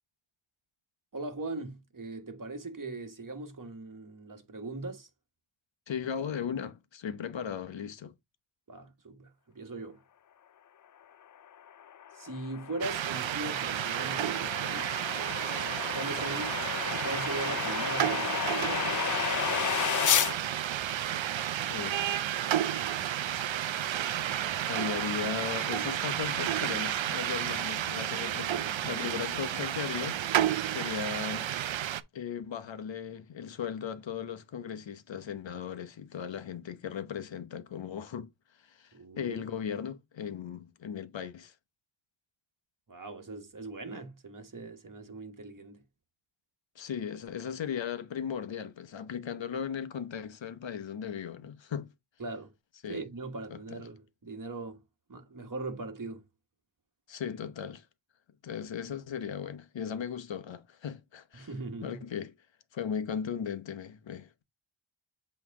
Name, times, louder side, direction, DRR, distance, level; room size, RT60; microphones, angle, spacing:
voice 1, 1.1-5.1 8.7-10.0 12.1-15.1 15.9-19.3 38.9-39.4 42.9-45.8 52.2-52.5 52.9-54.8 55.1-56.2 61.3-62.0, right 2 dB, 40° right, 1.7 m, -40 dB
voice 2, 5.9-8.1 21.7-22.3 24.7-30.2 30.7-31.5 32.1-38.3 38.6-41.5 46.8-51.9 52.8-53.0 53.5-53.8 57.1-57.9 58.4-61.5 61.8-62.3 62.7-64.4, left 7 dB, 65° left, 1.0 m, -37 dB
sound 1, 11.7-20.3, left 9 dB, 40° left, 0.4 m, -33 dB
sound 2, 12.8-32.0, right 11 dB, 65° right, 0.6 m, -31 dB
8.1 x 3.3 x 3.6 m
wide cardioid pair, 100°, 50 cm